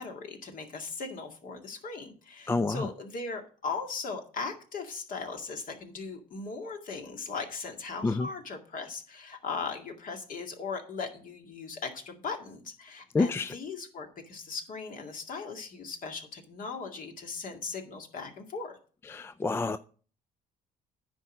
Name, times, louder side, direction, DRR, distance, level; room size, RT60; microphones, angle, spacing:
voice 1, 0.0-18.8, left 4 dB, 55° left, 2.1 m, -38 dB
voice 2, 2.5-2.9 8.0-8.3 13.1-13.5 19.1-19.8, left 3 dB, 15° left, 0.3 m, -28 dB
9.9 x 4.7 x 7.3 m
cardioid pair, 110°, 17 cm